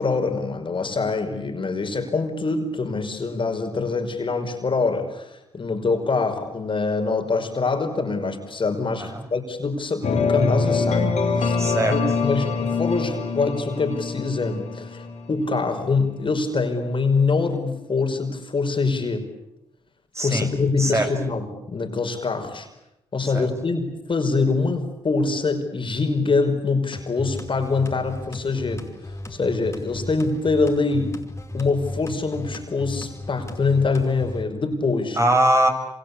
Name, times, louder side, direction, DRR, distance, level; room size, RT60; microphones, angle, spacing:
voice 1, 0.0-11.6 11.9-19.3 20.2-22.7 23.1-28.9 29.3-31.2 31.5-35.2, left 4 dB, 45° left, 6 dB, 5.5 m, -24 dB
sound 1, 10.0-15.9, left 4 dB, 65° left, 4.4 m, -24 dB
voice 2, 11.6-12.0 20.1-20.5 20.8-21.1 23.2-23.5 35.2-35.7, right 1 dB, 25° right, 6 dB, 6.6 m, -21 dB
sound 2, 26.9-34.4, left 1 dB, 25° left, 5.4 m, -36 dB
27.0 x 26.0 x 8.5 m, 0.84 s
supercardioid pair, 50°, 12 cm